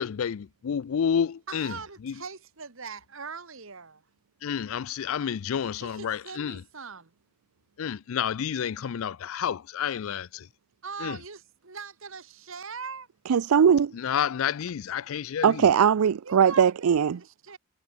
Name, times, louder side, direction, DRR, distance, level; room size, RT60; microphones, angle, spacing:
voice 1, 0.0-2.2 4.4-6.6 7.8-10.5 11.0-11.2 13.9-15.7, left 8 dB, 70° left, 0.4 m, -30 dB
voice 2, 1.5-4.0 5.8-7.1 10.8-13.1 16.3-17.6, right 5 dB, 65° right, 1.7 m, -41 dB
voice 3, 13.3-13.9 15.4-17.2, right 7 dB, 85° right, 0.4 m, -20 dB
head